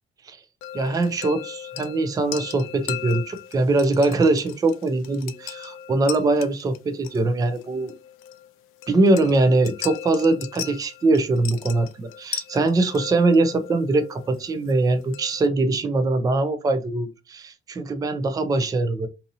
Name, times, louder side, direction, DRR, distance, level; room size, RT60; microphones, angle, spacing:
sound 1, 0.6-15.5, left 11 dB, 85° left, 0.4 m, -38 dB
voice 1, 0.7-7.9 8.9-19.1, right 2 dB, 15° right, 0.4 m, -22 dB
2.7 x 2.6 x 2.6 m
cardioid pair, 145°, 21 cm